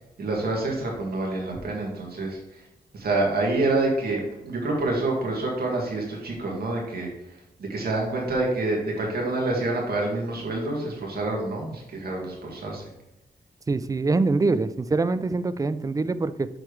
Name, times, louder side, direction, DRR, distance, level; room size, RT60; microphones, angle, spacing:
voice 1, 0.2-2.6 2.9-12.8, right 2 dB, 65° right, -2 dB, 2.0 m, -27 dB
voice 2, 13.7-16.5, right 3 dB, 20° right, 13 dB, 0.3 m, -24 dB
6.6 x 6.2 x 3.2 m, 0.91 s
wide cardioid pair, 135°, 17 cm